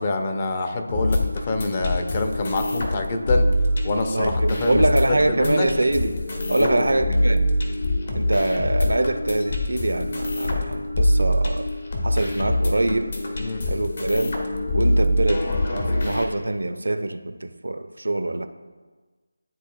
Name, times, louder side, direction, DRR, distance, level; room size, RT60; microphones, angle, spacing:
voice 1, 0.0-3.5 3.8-4.8 5.3-5.7 6.6-6.8 13.4-13.6, left 2 dB, 30° left, 5 dB, 0.6 m, -26 dB
sound 1, 0.9-16.2, left 1 dB, 50° left, 1.1 m, -24 dB
voice 2, 4.0-6.2 6.5-7.5 8.1-11.7 12.0-13.2 13.7-14.4 14.7-18.5, right 2 dB, 70° right, 10 dB, 0.4 m, -24 dB
11.5 x 4.0 x 2.4 m, 1.4 s
figure-of-eight pair, 160°, 0 cm